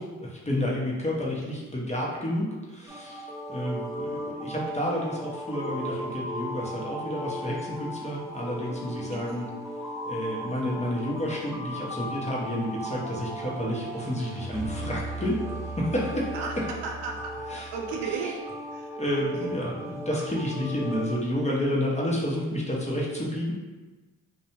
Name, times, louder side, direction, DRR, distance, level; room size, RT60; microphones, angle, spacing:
voice 1, 0.0-9.5 10.1-15.4 15.8-16.3 17.5-17.7 19.0-23.5, left 1 dB, 15° left, -4 dB, 0.8 m, -30 dB
sound 1, 2.9-21.2, equal, 5° right, 0.5 m, -36 dB
voice 2, 16.3-18.4 18.7-19.5, right 5 dB, 85° right, 1 dB, 0.5 m, -36 dB
2.6 x 2.2 x 2.9 m, 1.2 s
supercardioid pair, 45°, 39 cm